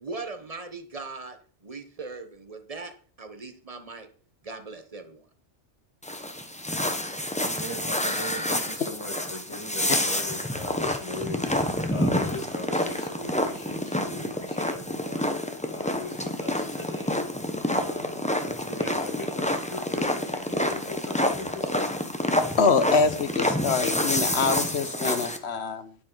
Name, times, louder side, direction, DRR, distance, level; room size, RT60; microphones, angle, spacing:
voice 1, 0.0-4.1 4.4-5.2, right 3 dB, 30° right, 8 dB, 1.2 m, -39 dB
sound 1, 6.0-25.4, left 1 dB, 5° left, 0.9 m, -28 dB
voice 2, 7.4-17.5 17.7-21.9, left 1 dB, 25° left, 4 dB, 1.9 m, -39 dB
voice 3, 22.6-26.0, left 4 dB, 65° left, 11 dB, 1.3 m, -24 dB
10.5 x 9.4 x 4.0 m, 0.43 s
omnidirectional pair, 1.2 m